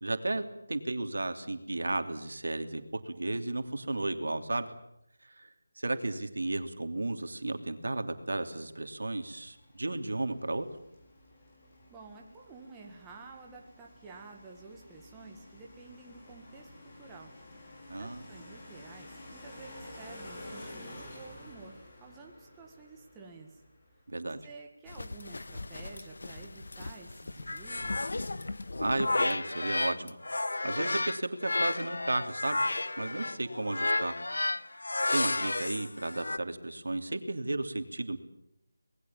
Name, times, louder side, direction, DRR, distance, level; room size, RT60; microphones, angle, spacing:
voice 1, 0.0-4.7 5.2-5.5 5.8-10.7 17.9-18.2 24.1-24.4 28.8-30.1 30.6-32.6 33.0-34.2 34.6-34.8 35.1-38.2, right 2 dB, 80° right, 7 dB, 2.9 m, -34 dB
sound 1, 8.1-24.3, left 1 dB, 20° left, 5.0 m, -51 dB
voice 2, 11.9-17.3 17.9-23.6 24.2-28.1, right 4 dB, 10° right, -1 dB, 1.8 m, -51 dB
sound 2, 24.9-29.3 30.1-30.2, left 2 dB, 60° left, 1.5 m, -41 dB
sound 3, 27.5-30.0 30.2-36.4, left 2 dB, 80° left, 1.1 m, -32 dB
26.5 x 20.0 x 7.4 m, 0.81 s
figure-of-eight pair, 175°, 0 cm